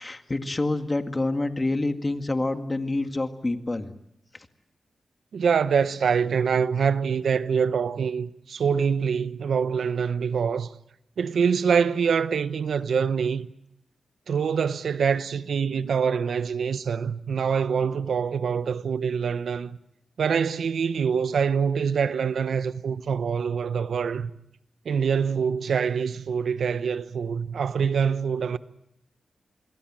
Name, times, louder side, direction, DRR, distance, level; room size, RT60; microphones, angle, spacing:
voice 1, 0.0-3.9, left 2 dB, 25° left, 2.0 m, -27 dB
voice 2, 5.3-10.7 11.2-13.5 14.3-19.8 20.2-24.3 24.8-28.6, right 6 dB, 80° right, 0.9 m, -25 dB
26.5 x 22.0 x 7.5 m
cardioid pair, 70°, 0 cm